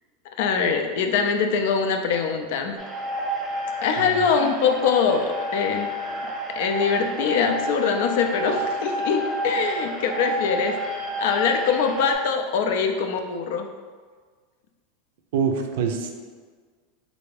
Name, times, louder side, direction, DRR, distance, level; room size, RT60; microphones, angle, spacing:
voice 1, 0.4-2.7 3.8-5.9 6.6-10.9 11.2-13.7, left 6 dB, 70° left, 5 dB, 0.4 m, -23 dB
sound 1, 2.8-12.1, right 1 dB, 10° right, 0.7 m, -30 dB
voice 2, 15.3-16.1, right 6 dB, 75° right, 4 dB, 0.4 m, -25 dB
3.3 x 2.5 x 3.2 m, 1.5 s
supercardioid pair, 130°, 0 cm